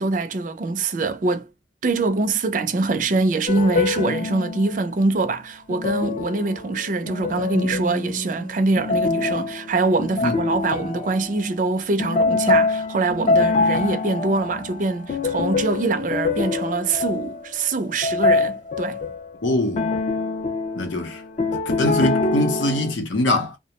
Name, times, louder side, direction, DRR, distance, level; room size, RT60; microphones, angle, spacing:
voice 1, 0.0-1.5 1.8-19.0, right 3 dB, 45° right, 0.4 m, -24 dB
sound 1, 3.5-4.8 5.7-11.5 12.0-19.4 19.8-22.9, left 3 dB, 35° left, 0.3 m, -25 dB
voice 2, 19.4-19.9 20.7-21.2 21.7-23.6, left 1 dB, 80° left, 0.7 m, -23 dB
2.2 x 2.0 x 2.8 m
head